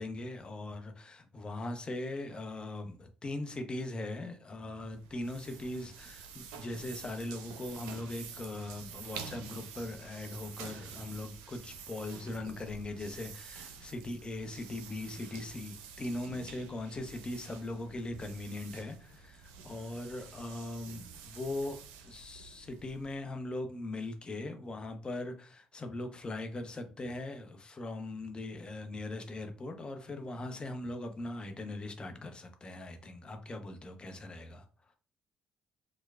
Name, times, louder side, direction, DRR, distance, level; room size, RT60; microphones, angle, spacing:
voice 1, 0.0-34.7, left 2 dB, 35° left, 0.8 m, -40 dB
sound 1, 4.8-23.2, right 6 dB, 90° right, 0.4 m, -49 dB
4.5 x 2.2 x 2.4 m
supercardioid pair, 60°, 3 cm